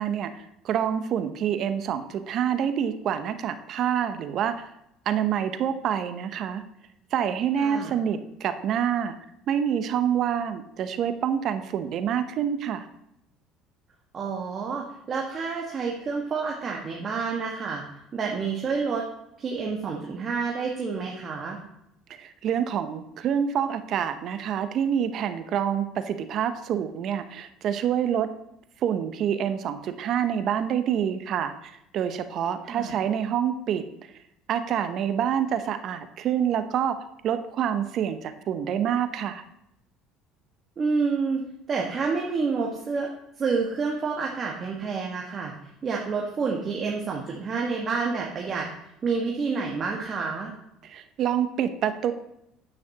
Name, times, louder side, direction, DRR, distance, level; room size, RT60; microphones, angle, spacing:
voice 1, 0.0-4.7 5.1-6.6 7.1-9.2 9.5-12.9 22.1-28.3 28.8-33.8 34.5-39.4 50.8-52.1, right 9 dB, 55° right, 10 dB, 0.8 m, -27 dB
voice 2, 7.6-7.9 14.1-17.8 18.1-19.0 19.4-21.6 32.7-32.9 40.8-43.1 43.4-45.5 45.8-48.7 49.0-50.5, right 4 dB, 40° right, -1 dB, 1.5 m, -28 dB
9.5 x 9.0 x 2.9 m, 0.81 s
hypercardioid pair, 70°, 0 cm